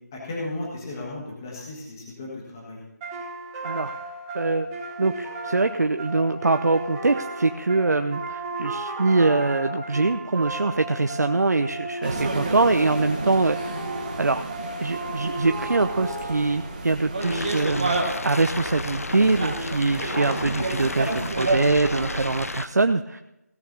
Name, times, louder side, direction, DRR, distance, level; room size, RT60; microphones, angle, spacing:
voice 1, 0.1-2.8, left 2 dB, 10° left, -4 dB, 1.5 m, -35 dB
sound 1, 3.0-16.9, right 2 dB, 5° right, 1.3 m, -35 dB
voice 2, 4.3-4.7 5.0-13.7 14.2-14.4 14.8-18.0 18.2-23.2, right 3 dB, 70° right, 8 dB, 0.6 m, -23 dB
sound 2, 12.0-22.5, right 2 dB, 30° right, 1.4 m, -31 dB
sound 3, 17.2-22.7, left 3 dB, 55° left, 0.6 m, -33 dB
17.0 x 6.7 x 5.4 m, 0.90 s
figure-of-eight pair, 175°, 9 cm